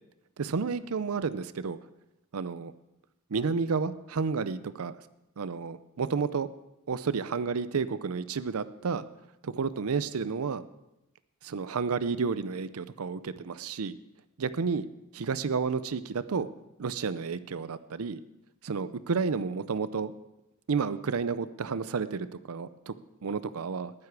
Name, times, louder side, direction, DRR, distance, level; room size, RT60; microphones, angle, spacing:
voice 1, 0.4-1.8 2.3-2.7 3.3-4.9 5.4-6.5 6.9-9.0 9.4-10.6 11.4-14.0 14.4-14.9 15.1-16.5 16.8-18.2 18.6-20.1 20.7-22.9 23.2-23.9, right 5 dB, 80° right, 15 dB, 0.5 m, -31 dB
19.5 x 9.9 x 4.7 m, 0.91 s
head